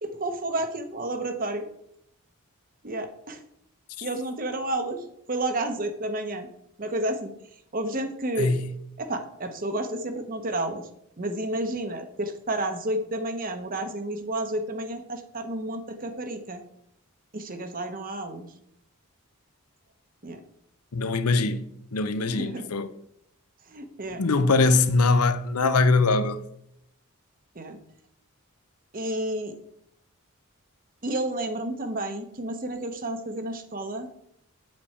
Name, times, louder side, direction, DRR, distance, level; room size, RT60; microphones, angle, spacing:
voice 1, 0.0-1.7 2.8-3.4 4.0-6.5 6.8-7.3 7.7-8.6 9.0-10.8 11.2-16.6 17.3-18.5 20.2-20.4 22.3-22.7 23.7-24.2 27.5-27.8 28.9-29.5 31.0-34.1, right 1 dB, 40° right, 1.0 m, -31 dB
voice 2, 20.9-22.9 24.2-26.4, left 3 dB, 85° left, 0.7 m, -22 dB
8.5 x 7.6 x 4.4 m
head